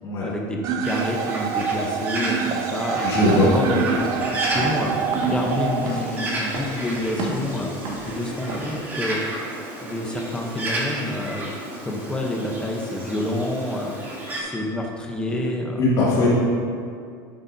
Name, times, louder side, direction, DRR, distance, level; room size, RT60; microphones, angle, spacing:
voice 1, 0.2-3.0 3.4-4.9 5.3-7.7 8.1-9.2 9.8-11.5 11.8-13.9 14.4-15.9, left 1 dB, 10° left, 0 dB, 0.8 m, -28 dB
sound 1, 0.6-6.6, right 6 dB, 35° right, 0.5 m, -26 dB
Bird, 0.8-14.4, right 1 dB, 20° right, 1.5 m, -32 dB
voice 2, 3.0-3.5 15.8-16.3, left 2 dB, 35° left, -7 dB, 2.4 m, -19 dB
Walk footsteps / Siren, 3.1-8.7, right 1 dB, 60° right, 1.8 m, -33 dB
11.0 x 8.6 x 2.7 m, 2.3 s
cardioid pair, 165°, 10 cm